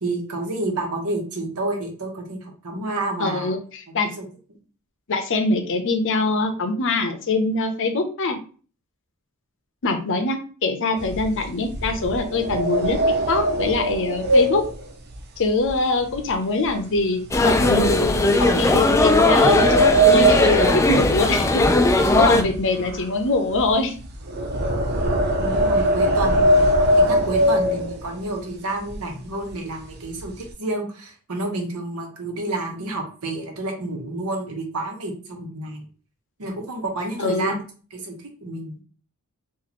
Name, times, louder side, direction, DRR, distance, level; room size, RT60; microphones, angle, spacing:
voice 1, 0.0-3.5 3.9-4.2 25.4-26.6 27.0-35.9 36.4-37.5 37.9-38.1 38.4-38.8, right 2 dB, 90° right, 2 dB, 1.0 m, -29 dB
voice 2, 3.2-4.1 5.1-8.4 9.8-13.0 13.3-14.6 15.4-18.1 18.4-19.6 20.1-21.6 22.0-23.9 37.2-37.6, left 3 dB, 60° left, 7 dB, 0.6 m, -23 dB
sound 1, 11.0-16.3 16.6-17.0 17.5-17.6 18.4-21.7 22.0-28.3 28.9-29.0 29.3-29.5 29.9-30.5, right 1 dB, 50° right, 0.6 m, -21 dB
sound 2, 17.3-22.4, left 2 dB, 15° left, 0.3 m, -18 dB
3.0 x 2.5 x 4.1 m, 0.40 s
head